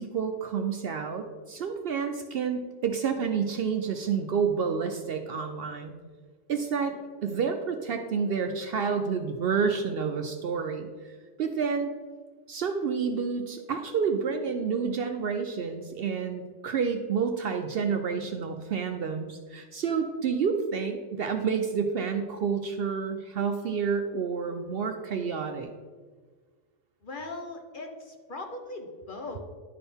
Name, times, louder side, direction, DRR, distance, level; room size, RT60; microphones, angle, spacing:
voice 1, 0.0-5.9 6.5-6.9 7.2-11.9 12.5-25.7, right 6 dB, 60° right, 6 dB, 0.7 m, -29 dB
voice 2, 27.0-29.4, left 2 dB, 50° left, 3 dB, 0.8 m, -39 dB
11.0 x 4.4 x 3.5 m, 1.5 s
omnidirectional pair, 1.3 m